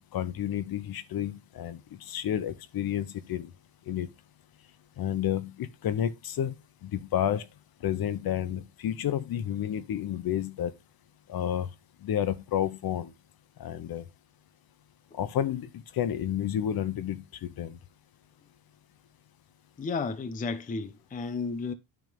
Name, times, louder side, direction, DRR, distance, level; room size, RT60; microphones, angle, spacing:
voice 1, 0.1-3.5 3.9-4.1 5.0-6.5 6.8-7.5 7.8-10.7 11.3-11.7 12.0-13.1 13.6-14.0 15.2-17.8, left 10 dB, 50° left, 0.9 m, -30 dB
voice 2, 19.8-21.7, left 4 dB, 20° left, 0.5 m, -33 dB
9.6 x 3.6 x 5.2 m
cardioid pair, 140°, 47 cm